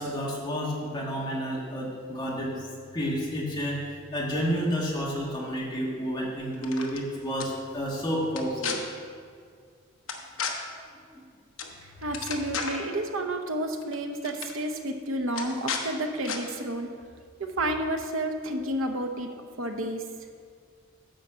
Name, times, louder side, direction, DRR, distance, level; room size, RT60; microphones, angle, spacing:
voice 1, 0.0-3.8 4.1-8.8 11.1-11.2, equal, 20° left, -4 dB, 1.5 m, -30 dB
sound 1, 6.5-7.0 7.4-7.5 8.3-8.8 10.1-10.5 11.6-11.8 12.0-12.9 13.8-14.0 14.2-14.5 15.3-15.8 16.2-16.4, left 6 dB, 60° left, 0.9 m, -33 dB
voice 2, 11.8-16.9 17.4-19.3 19.6-20.0, right 1 dB, 60° right, 4 dB, 0.9 m, -30 dB
10.5 x 4.1 x 7.3 m, 2.1 s
head